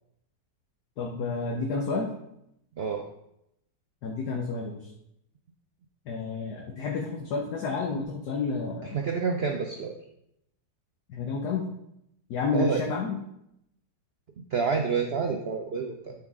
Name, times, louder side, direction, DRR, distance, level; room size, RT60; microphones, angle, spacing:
voice 1, 1.0-2.1 4.0-4.9 6.1-9.0 11.1-11.6 12.3-13.2, left 4 dB, 65° left, 0 dB, 1.5 m, -30 dB
voice 2, 8.9-9.9 12.5-12.8 14.5-16.1, right 5 dB, 85° right, 3 dB, 0.5 m, -28 dB
12.0 x 4.5 x 3.7 m, 0.80 s
omnidirectional pair, 1.9 m